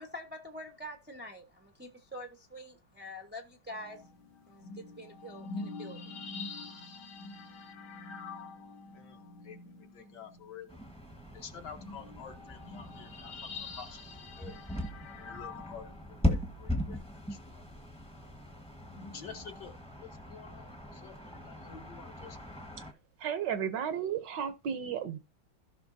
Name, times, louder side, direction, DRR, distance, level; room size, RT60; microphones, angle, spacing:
voice 1, 0.0-4.0 4.5-6.2, left 1 dB, 15° right, 0.3 m, -46 dB
sound 1, 3.7-10.8 11.2-11.3 11.6-16.5 18.8-19.7, left 4 dB, 80° left, 2.2 m, -46 dB
voice 2, 8.9-10.8 11.3-14.0 14.4-14.5 15.1-17.6 17.9-18.3 19.1-22.4, left 6 dB, 60° left, 1.5 m, -49 dB
sound 2, 10.7-22.9, left 1 dB, 5° left, 0.7 m, -39 dB
voice 3, 23.2-25.2, right 8 dB, 70° right, 1.2 m, -33 dB
16.0 x 5.7 x 2.6 m
omnidirectional pair, 2.3 m